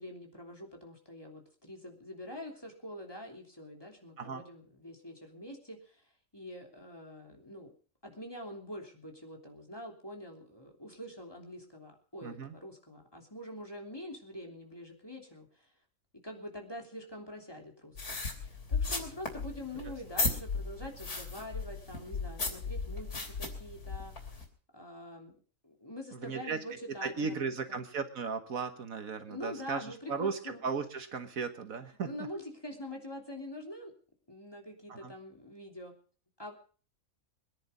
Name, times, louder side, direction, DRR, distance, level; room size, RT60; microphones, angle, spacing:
voice 1, 0.0-6.0 6.3-7.7 8.0-15.7 16.1-18.0 18.4-24.4 24.7-25.4 25.6-27.9 29.3-30.6 32.0-33.9 34.3-35.9 36.4-36.5, left 1 dB, 15° left, 1 dB, 3.2 m, -45 dB
voice 2, 12.2-12.6 26.1-26.6 27.0-32.1 34.9-35.1, right 5 dB, 65° right, 8 dB, 1.7 m, -36 dB
sound 1, 18.0-24.4, left 4 dB, 90° left, 3.9 m, -36 dB
22.5 x 10.5 x 5.3 m, 0.42 s
omnidirectional pair, 1.6 m